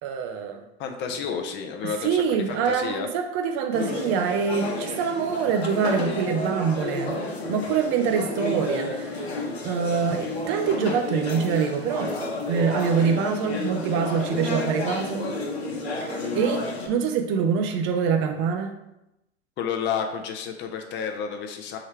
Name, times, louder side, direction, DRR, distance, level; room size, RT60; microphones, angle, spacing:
voice 1, 0.0-0.6 1.1-1.2 1.8-7.2 7.5-12.1 12.5-15.3 16.0-18.7, right 6 dB, 40° right, 5 dB, 0.5 m, -25 dB
voice 2, 0.8-3.1 19.6-21.8, left 7 dB, 35° left, 4 dB, 0.7 m, -31 dB
sound 1, 3.7-16.9, left 2 dB, 70° left, 1.0 m, -31 dB
3.7 x 3.1 x 4.5 m, 0.90 s
figure-of-eight pair, 85°, 33 cm